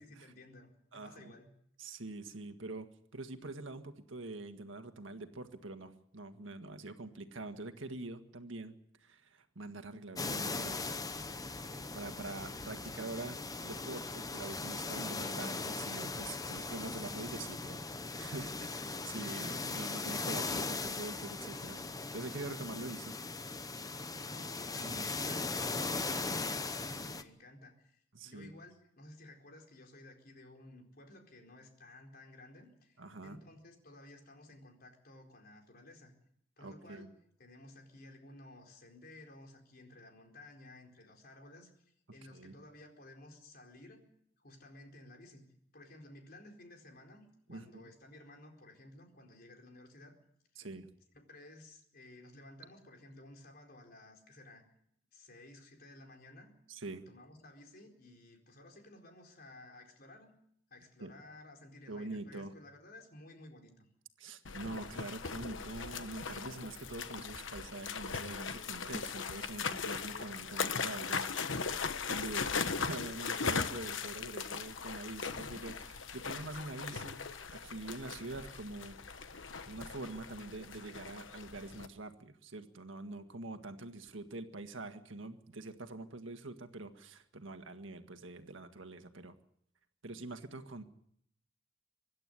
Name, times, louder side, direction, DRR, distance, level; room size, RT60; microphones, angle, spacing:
voice 1, 0.0-1.5 24.2-36.1 36.6-37.1 37.4-44.0 44.4-45.4 45.7-50.1 50.5-50.7 51.3-54.6 55.1-56.5 57.1-60.3 60.7-63.9, left 1 dB, 50° left, 2 dB, 4.3 m, -55 dB
voice 2, 0.9-1.3 1.8-11.0 11.7-21.8 22.1-23.2 24.8-25.1 28.1-28.5 33.0-33.4 36.6-37.1 42.3-42.6 47.5-47.8 50.6-50.9 56.7-57.0 61.0-61.1 61.9-62.5 64.2-71.6 72.1-72.6 72.9-77.2 77.5-79.0 79.6-89.4 90.0-90.8, right 2 dB, 75° right, 7 dB, 1.8 m, -45 dB
sound 1, 10.2-27.2, left 3 dB, 20° left, 0.9 m, -39 dB
sound 2, 64.4-81.9, left 5 dB, 70° left, 1.2 m, -39 dB
25.0 x 11.5 x 9.9 m, 0.71 s
head